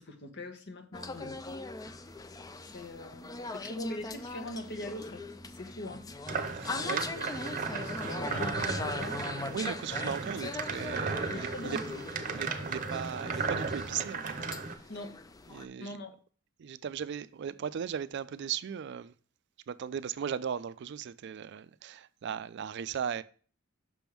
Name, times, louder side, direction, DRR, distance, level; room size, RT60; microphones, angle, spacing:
voice 1, 0.0-1.4 2.0-2.1 2.7-6.1 6.7-7.3 7.7-9.7 11.3-12.0 14.9-15.2 15.8-16.2, left 1 dB, 55° left, 1.1 m, -42 dB
sound 1, 0.9-15.7, left 3 dB, 20° left, 0.4 m, -41 dB
sound 2, 6.3-14.8, right 4 dB, 40° right, 0.7 m, -35 dB
voice 2, 6.5-7.0 9.5-11.8 12.2-14.3 15.5-16.0 16.6-19.1 19.7-23.2, right 8 dB, 60° right, 0.4 m, -37 dB
6.1 x 3.5 x 5.8 m
head